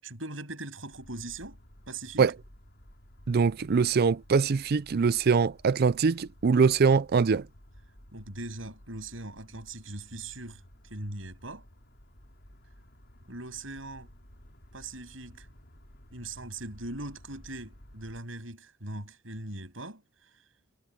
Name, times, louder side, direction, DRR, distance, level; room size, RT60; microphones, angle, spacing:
voice 1, 0.0-1.6 1.9-2.3 8.1-11.7 13.3-14.1 14.7-15.5 16.1-20.4, right 2 dB, 80° right, 7.7 m, -40 dB
sound 1, 0.9-18.2, equal, 60° left, 5.3 m, -55 dB
voice 2, 3.3-7.5, right 5 dB, 50° right, 0.4 m, -23 dB
head